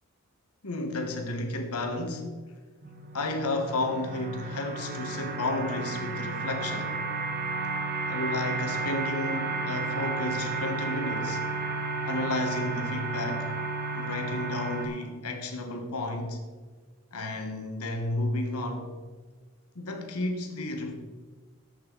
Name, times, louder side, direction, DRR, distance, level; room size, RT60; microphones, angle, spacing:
voice 1, 0.6-2.5 3.1-7.0 8.1-11.4 12.1-13.5 13.9-16.4 17.1-18.9 19.7-20.9, left 2 dB, 90° left, 1.4 m, -32 dB
sound 1, 2.8-14.9, right 3 dB, 40° right, 1.0 m, -32 dB
10.5 x 8.0 x 4.0 m
head